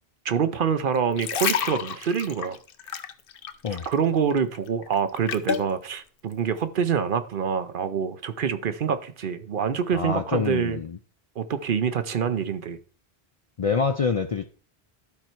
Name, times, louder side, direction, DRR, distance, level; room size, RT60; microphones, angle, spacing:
voice 1, 0.2-2.6 3.7-10.8 11.4-12.8, right 7 dB, 60° right, 0.8 m, -26 dB
sound 1, 1.0-4.0 4.3-5.7 6.3-6.5, left 8 dB, 65° left, 0.8 m, -30 dB
voice 2, 9.9-11.0 13.6-14.5, left 5 dB, 50° left, 0.4 m, -26 dB
11.5 x 4.5 x 4.4 m
omnidirectional pair, 1.1 m